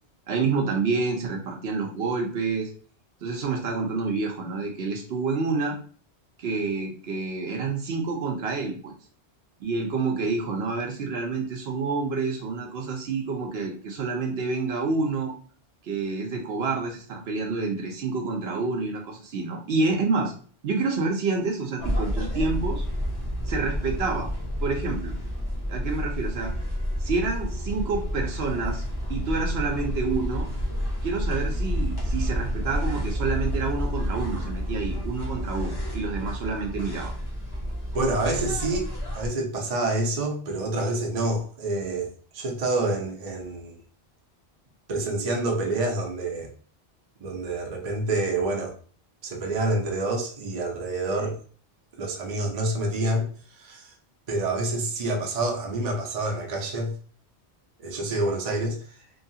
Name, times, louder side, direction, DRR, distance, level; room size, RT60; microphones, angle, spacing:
voice 1, 0.3-2.7 3.2-5.7 6.4-8.9 9.6-15.3 15.8-20.3 20.6-22.9 23.5-24.3 24.6-25.1 25.7-26.5 27.0-28.8 29.1-30.5 31.0-37.1, right 4 dB, 70° right, 0.9 m, -28 dB
sound 1, 21.8-39.3, equal, 25° left, 0.6 m, -30 dB
voice 2, 37.9-42.1 42.3-43.8 44.9-46.5 47.2-48.7 49.2-51.4 52.0-53.3 53.6-53.9 54.3-56.9 57.8-58.8, right 2 dB, 45° right, 0.6 m, -27 dB
3.0 x 2.3 x 2.7 m
omnidirectional pair, 1.1 m